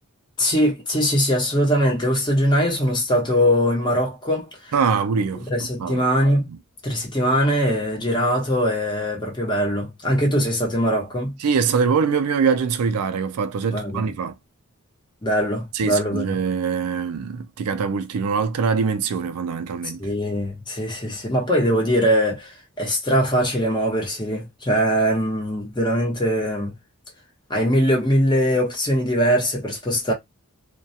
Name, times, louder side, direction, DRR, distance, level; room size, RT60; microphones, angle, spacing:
voice 1, 0.4-4.7 5.5-6.5 6.8-11.4 13.7-14.1 15.2-16.2 20.0-26.7 27.5-30.1, equal, 20° left, 0.9 m, -21 dB
voice 2, 4.7-5.5 5.8-6.0 6.5-6.6 11.4-14.3 15.7-20.0, right 5 dB, 80° right, 0.4 m, -23 dB
2.3 x 2.2 x 2.7 m
head